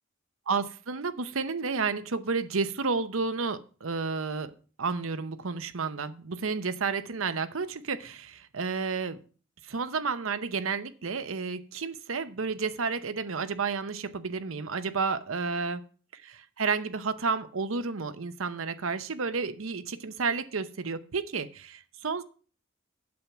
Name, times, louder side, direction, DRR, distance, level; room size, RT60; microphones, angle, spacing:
voice 1, 0.5-9.2 9.6-15.8 16.1-22.2, right 4 dB, 80° right, 12 dB, 0.8 m, -31 dB
8.6 x 7.6 x 5.8 m, 0.40 s
head